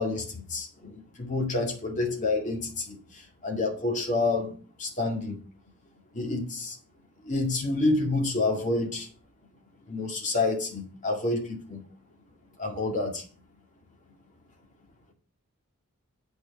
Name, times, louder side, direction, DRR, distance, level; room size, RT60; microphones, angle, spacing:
voice 1, 0.0-4.5 4.8-5.4 6.1-6.8 7.2-9.1 9.9-11.8 12.6-13.2, left 3 dB, 35° left, 1 dB, 2.1 m, -28 dB
8.3 x 4.6 x 6.5 m, 0.39 s
head